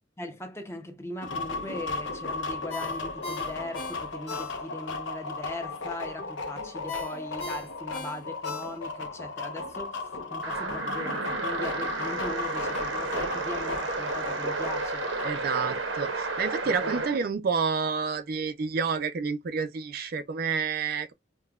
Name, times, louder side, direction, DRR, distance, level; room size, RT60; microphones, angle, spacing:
voice 1, 0.2-15.1 15.5-15.8 16.6-17.1, left 1 dB, 15° left, 0.6 m, -40 dB
sound 1, 1.2-15.4, left 3 dB, 75° left, 0.7 m, -35 dB
Ringtone, 2.7-5.0 5.3-5.4 6.9-9.1 9.5-9.6, left 3 dB, 35° left, 1.3 m, -39 dB
sound 2, 10.4-17.2, right 3 dB, 75° right, 0.9 m, -32 dB
voice 2, 15.2-21.1, right 5 dB, 50° right, 0.4 m, -29 dB
5.2 x 2.2 x 2.3 m
head